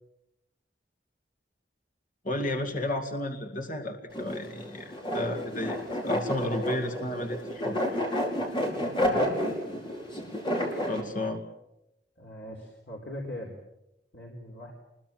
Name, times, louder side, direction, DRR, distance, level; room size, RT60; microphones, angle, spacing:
voice 1, 2.2-7.8 10.9-11.4, left 1 dB, 50° left, 4 dB, 2.2 m, -32 dB
sound 1, 4.1-11.0, equal, 30° left, 5.0 m, -30 dB
voice 2, 8.9-9.4 12.2-13.6 14.1-14.7, equal, 70° left, 0 dB, 4.1 m, -40 dB
26.5 x 21.5 x 7.6 m, 0.89 s
head